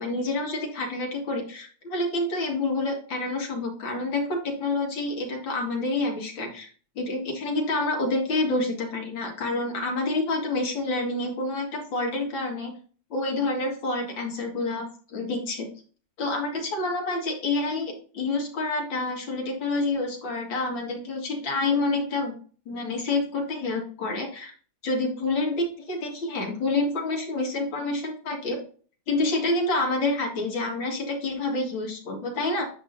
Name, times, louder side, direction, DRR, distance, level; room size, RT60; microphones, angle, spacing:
voice 1, 0.0-6.7 7.0-12.7 13.1-15.7 16.2-22.3 22.7-24.5 24.8-28.6 29.1-32.6, left 2 dB, 70° left, 1 dB, 2.7 m, -28 dB
9.1 x 6.2 x 2.6 m, 0.42 s
omnidirectional pair, 2.1 m